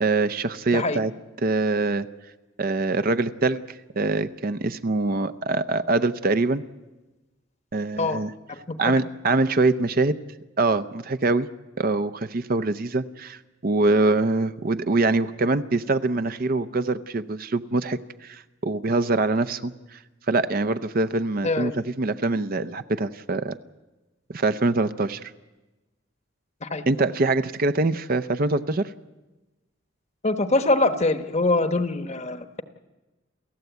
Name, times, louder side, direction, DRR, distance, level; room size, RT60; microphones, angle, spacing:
voice 1, 0.0-1.1 1.4-2.1 2.6-3.6 4.0-6.6 7.7-8.3 8.8-10.2 10.6-11.5 11.8-20.0 20.3-23.6 24.3-25.3 26.9-28.9, right 3 dB, 45° right, 12 dB, 0.6 m, -24 dB
voice 2, 30.2-32.6, left 2 dB, 35° left, 9 dB, 1.0 m, -24 dB
29.5 x 14.5 x 8.1 m, 1.1 s
head